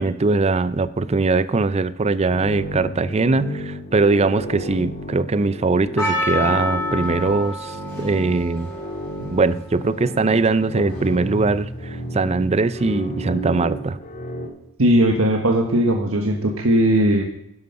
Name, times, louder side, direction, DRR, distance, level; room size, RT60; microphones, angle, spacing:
voice 1, 0.0-8.7 9.3-14.0, right 3 dB, 30° right, 15 dB, 0.5 m, -21 dB
sound 1, 2.3-14.5, equal, 35° left, 2.6 m, -33 dB
Percussion, 6.0-10.3 11.0-11.1, left 1 dB, 10° left, 6.7 m, -28 dB
voice 2, 14.8-17.2, right 1 dB, 75° right, 3 dB, 1.4 m, -18 dB
11.5 x 11.0 x 5.6 m, 0.77 s
head